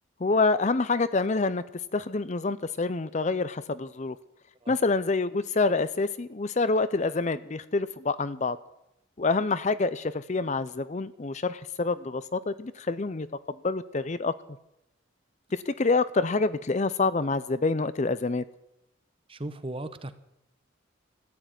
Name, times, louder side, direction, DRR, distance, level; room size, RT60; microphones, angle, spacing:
voice 1, 0.2-1.6 1.9-4.2 4.7-8.6 9.2-13.3 13.6-14.3 15.5-18.4, left 3 dB, 35° left, 15 dB, 0.5 m, -27 dB
voice 2, 19.3-20.1, right 1 dB, 25° right, 12 dB, 1.0 m, -36 dB
14.0 x 10.5 x 9.1 m, 0.84 s
head